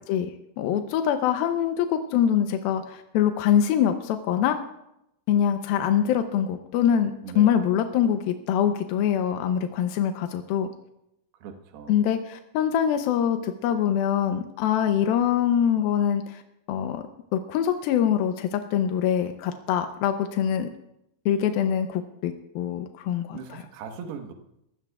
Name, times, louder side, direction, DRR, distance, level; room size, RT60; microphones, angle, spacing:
voice 1, 0.6-4.6 5.3-10.7 11.9-16.4 16.7-17.0 17.3-20.7 21.3-23.6, left 9 dB, 80° left, 7 dB, 2.2 m, -24 dB
voice 2, 11.4-12.0 23.3-24.3, right 6 dB, 70° right, 4 dB, 3.2 m, -39 dB
22.5 x 16.0 x 2.4 m, 0.82 s
omnidirectional pair, 5.1 m